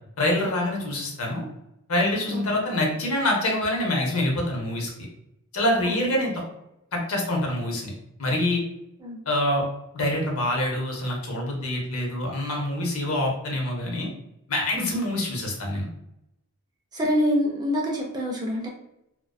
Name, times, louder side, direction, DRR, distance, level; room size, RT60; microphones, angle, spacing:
voice 1, 0.2-1.4 1.9-4.9 5.5-6.3 6.9-7.9 8.2-8.6 9.3-9.6 9.9-14.1 14.5-15.9, left 1 dB, 70° left, 0 dB, 0.7 m, -25 dB
voice 2, 16.9-18.7, equal, 20° right, -2 dB, 0.3 m, -26 dB
2.5 x 2.1 x 2.3 m, 0.84 s
head